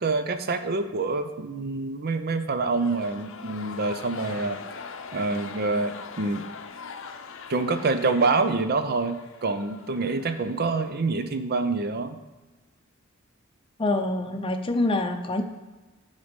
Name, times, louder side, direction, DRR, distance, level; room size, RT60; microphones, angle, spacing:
voice 1, 0.0-4.6 5.1-6.4 7.5-12.2, right 3 dB, 45° right, 9 dB, 0.6 m, -26 dB
sound 1, 2.6-11.1, left 5 dB, 65° left, 0.6 m, -42 dB
voice 2, 13.8-15.4, left 2 dB, 25° left, 5 dB, 0.6 m, -25 dB
10.0 x 4.1 x 5.2 m, 1.2 s
head